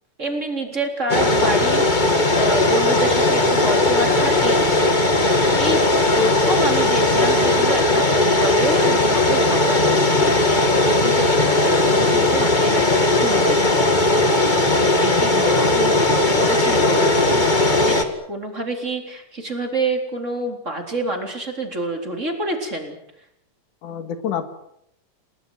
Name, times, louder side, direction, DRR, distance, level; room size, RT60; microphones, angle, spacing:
voice 1, 0.2-4.7 5.5-10.8 11.0-14.0 14.9-18.0 18.3-22.9, right 2 dB, 25° right, 3 dB, 4.0 m, -28 dB
sound 1, 1.1-18.0, left 2 dB, 15° left, 1.9 m, -18 dB
voice 2, 14.6-15.8 23.8-24.5, left 8 dB, 85° left, 9 dB, 3.3 m, -31 dB
30.0 x 19.0 x 8.0 m, 0.76 s
omnidirectional pair, 3.5 m